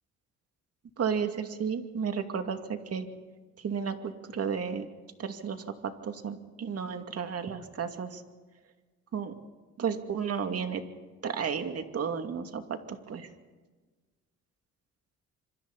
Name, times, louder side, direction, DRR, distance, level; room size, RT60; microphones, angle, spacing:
voice 1, 1.0-3.1 3.6-4.9 5.2-8.2 9.1-9.3 9.8-10.8 11.2-13.3, right 6 dB, 55° right, 6 dB, 2.6 m, -33 dB
27.0 x 25.5 x 4.2 m, 1.3 s
cardioid pair, 90°, 30 cm